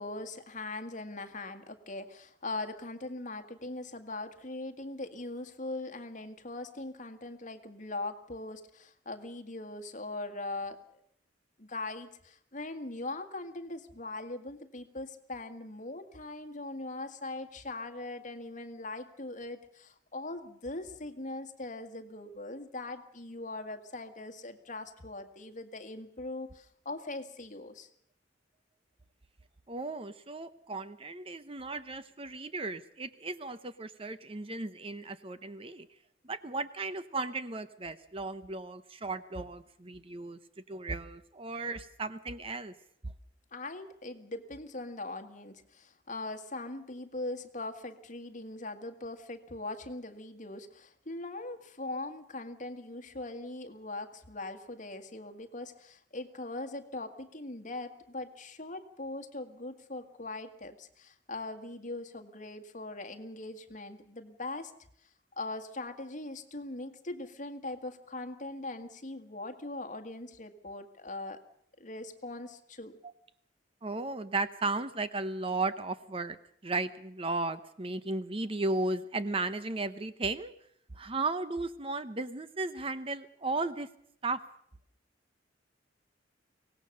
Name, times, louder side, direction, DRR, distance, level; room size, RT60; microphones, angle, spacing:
voice 1, 0.0-10.8 11.6-27.9 43.5-64.7 65.4-71.4 71.8-73.0, left 2 dB, 45° left, 8 dB, 1.8 m, -41 dB
voice 2, 29.7-35.9 36.2-40.4 40.7-42.7 43.0-43.1 73.0-73.1 73.8-76.4 76.6-80.5 80.9-83.9 84.2-84.4, right 3 dB, 30° right, 12 dB, 0.8 m, -35 dB
23.5 x 18.5 x 6.7 m, 0.67 s
head